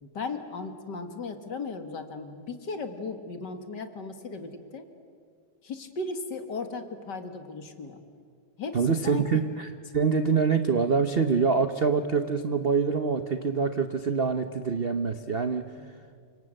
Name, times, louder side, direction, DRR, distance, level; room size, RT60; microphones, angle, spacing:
voice 1, 0.0-4.9 5.6-8.0 8.6-9.4 15.8-15.9, left 3 dB, 50° left, 8 dB, 2.4 m, -36 dB
voice 2, 8.7-15.7, right 5 dB, 60° right, 9 dB, 0.6 m, -25 dB
29.0 x 26.0 x 7.8 m, 2.2 s
omnidirectional pair, 2.4 m